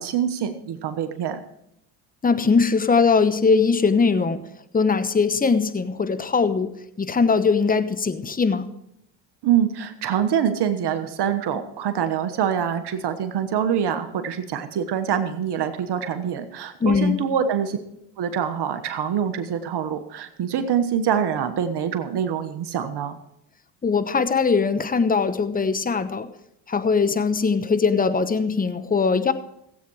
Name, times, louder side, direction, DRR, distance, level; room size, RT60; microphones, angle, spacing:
voice 1, 0.0-1.4 9.4-17.8 18.2-23.2, right 8 dB, 60° right, 8 dB, 1.3 m, -25 dB
voice 2, 2.2-4.4 4.7-8.7 16.8-17.2 23.8-26.3 26.7-29.3, left 5 dB, 20° left, 12 dB, 1.0 m, -21 dB
16.0 x 8.5 x 4.7 m, 0.78 s
supercardioid pair, 75°, 46 cm